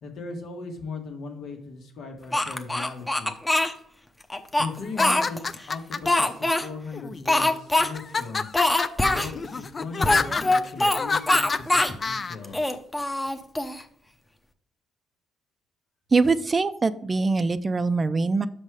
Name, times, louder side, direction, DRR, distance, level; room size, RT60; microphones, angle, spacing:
voice 1, 0.0-3.3 4.6-8.6 9.0-12.7, left 3 dB, 75° left, 2 dB, 1.7 m, -38 dB
Speech, 2.3-3.7 4.3-5.6 6.1-6.7 7.3-7.9 8.1-8.2 8.5-9.3 10.0-11.0 11.3-12.0 12.4-13.8, left 2 dB, 15° left, 0.8 m, -23 dB
sound 1, 4.8-6.2 6.9-7.5 7.9-12.4, left 4 dB, 35° left, 0.4 m, -28 dB
voice 2, 16.1-18.5, right 4 dB, 30° right, 13 dB, 0.5 m, -23 dB
6.4 x 5.4 x 4.9 m, 0.63 s
cardioid pair, 90°, 0 cm